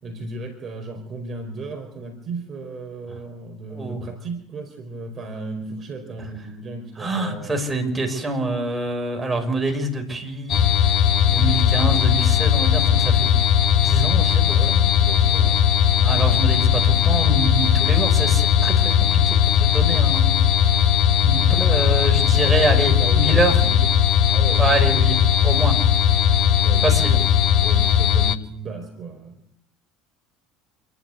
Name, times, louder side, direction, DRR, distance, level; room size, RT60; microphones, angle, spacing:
voice 1, 0.0-7.5 14.5-15.6 22.4-22.6 23.0-23.9 24.3-24.7 26.6-29.4, right 3 dB, 40° right, 5 dB, 4.7 m, -35 dB
voice 2, 3.7-4.0 7.0-10.6 11.3-13.3 13.8-14.8 16.0-20.3 21.2-23.6 24.6-25.7 26.8-27.2, right 2 dB, 15° right, 4 dB, 5.9 m, -25 dB
sound 1, 10.5-28.4, left 9 dB, 55° left, 1.1 m, -18 dB
27.5 x 12.0 x 8.3 m, 0.76 s
hypercardioid pair, 80°, 0 cm